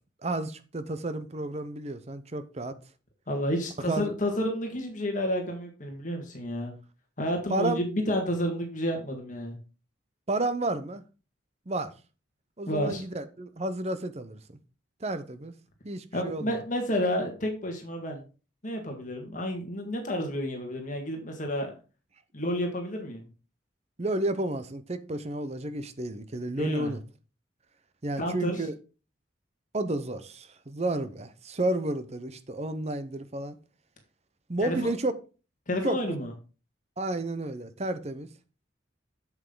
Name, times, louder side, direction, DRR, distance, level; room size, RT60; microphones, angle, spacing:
voice 1, 0.2-2.7 3.8-4.1 7.5-7.8 10.3-11.0 11.7-11.9 12.6-14.6 15.0-15.5 15.8-16.6 24.0-27.0 28.0-28.7 29.7-33.6 34.5-35.1 35.8-36.2 37.0-38.3, right 2 dB, 35° right, 0.8 m, -31 dB
voice 2, 3.3-6.7 7.2-9.6 12.7-13.0 16.1-18.2 18.6-21.7 22.3-23.3 26.6-26.9 28.2-28.6 34.6-34.9 35.7-36.3, equal, 40° left, 1.8 m, -30 dB
8.0 x 7.3 x 3.8 m
head